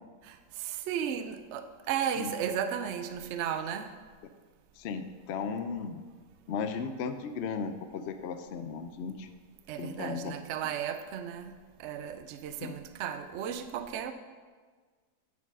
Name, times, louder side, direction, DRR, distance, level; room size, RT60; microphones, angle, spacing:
voice 1, 0.3-3.9 9.7-11.5 11.8-14.1, right 8 dB, 75° right, 0.6 m, -34 dB
voice 2, 4.8-6.0 6.5-9.3 9.8-10.3 12.6-12.7, left 5 dB, 70° left, 0.6 m, -36 dB
9.6 x 4.6 x 6.0 m
omnidirectional pair, 1.8 m